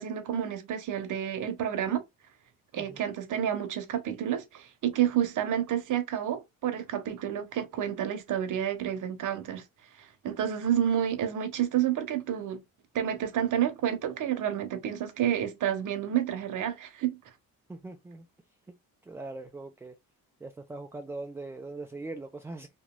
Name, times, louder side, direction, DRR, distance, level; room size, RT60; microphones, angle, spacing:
voice 1, 0.0-2.0 2.7-9.6 10.2-12.6 12.9-17.2, right 10 dB, 60° right, 0.9 m, -29 dB
voice 2, 17.7-18.3 19.1-20.0 20.4-22.7, right 2 dB, 10° right, 0.3 m, -41 dB
3.0 x 2.6 x 2.2 m
cardioid pair, 85°, 35 cm